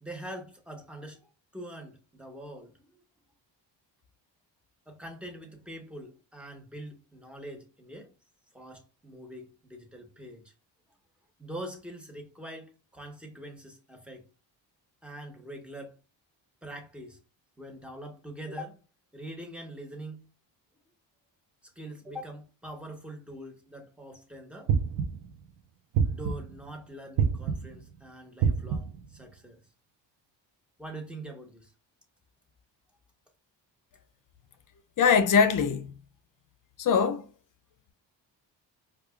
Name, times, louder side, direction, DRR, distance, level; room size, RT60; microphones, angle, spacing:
voice 1, 0.0-3.0 4.9-8.1 8.5-10.5 11.4-14.2 15.0-16.0 16.6-17.2 17.6-18.8 19.1-20.3 21.6-24.7 26.0-29.6 30.8-31.7, right 1 dB, 5° right, 0.8 m, -43 dB
sound 1, 24.7-25.3 25.9-26.6 27.2-27.8 28.4-29.1, right 6 dB, 80° right, 0.6 m, -27 dB
voice 2, 35.0-35.9 36.8-37.3, left 6 dB, 50° left, 0.5 m, -22 dB
4.6 x 2.3 x 2.3 m
cardioid pair, 105°, 44 cm